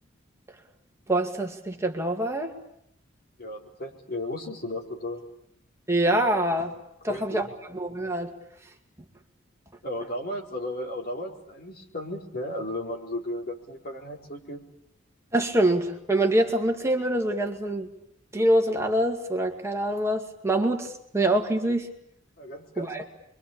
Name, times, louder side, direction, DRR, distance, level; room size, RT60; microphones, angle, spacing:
voice 1, 1.1-2.5 5.9-6.7 7.0-8.3 15.3-17.9 18.3-21.9 22.8-23.0, right 1 dB, 15° right, 3 dB, 2.2 m, -25 dB
voice 2, 3.4-5.2 7.1-7.5 9.8-14.6 22.4-22.9, left 1 dB, 50° left, 1 dB, 4.4 m, -35 dB
28.5 x 23.5 x 8.7 m, 0.74 s
head